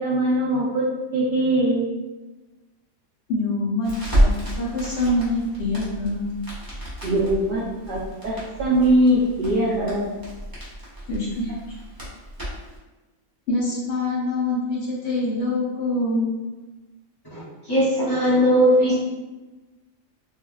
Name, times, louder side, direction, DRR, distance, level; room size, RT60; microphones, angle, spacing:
voice 1, 0.0-0.8 1.1-1.9 7.0-10.1, right 1 dB, 65° right, -7 dB, 0.5 m, -21 dB
voice 2, 3.3-6.2 11.1-11.4 13.5-16.4, left 2 dB, 60° left, -5 dB, 0.8 m, -25 dB
Crackle, 3.8-12.8, equal, 20° right, 0.6 m, -29 dB
voice 3, 17.3-18.9, equal, 30° left, -10 dB, 0.5 m, -19 dB
3.4 x 2.1 x 2.3 m, 1.1 s
omnidirectional pair, 1.5 m